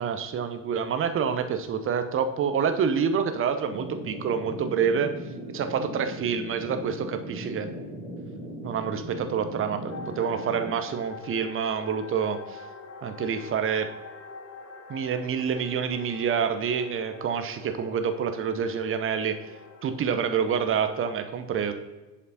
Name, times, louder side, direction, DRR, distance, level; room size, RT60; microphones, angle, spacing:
voice 1, 0.0-5.1 5.5-7.7 8.6-12.6 13.0-13.9 14.9-19.4 19.8-21.7, right 7 dB, 30° right, 8 dB, 0.7 m, -27 dB
sound 1, 3.7-10.7, equal, 85° left, 2.2 m, -38 dB
sound 2, 9.9-21.1, left 4 dB, 30° left, 1.0 m, -45 dB
11.0 x 5.1 x 2.8 m, 1.2 s
figure-of-eight pair, 55°, 47 cm